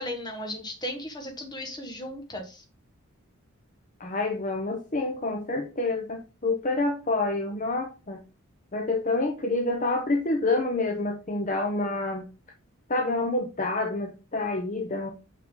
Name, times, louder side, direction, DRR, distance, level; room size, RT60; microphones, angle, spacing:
voice 1, 0.0-2.6, left 1 dB, 20° left, 3 dB, 1.3 m, -36 dB
voice 2, 4.0-8.2 8.7-12.2 12.9-15.1, left 2 dB, 35° left, 3 dB, 0.8 m, -28 dB
6.0 x 5.8 x 3.8 m, 0.31 s
head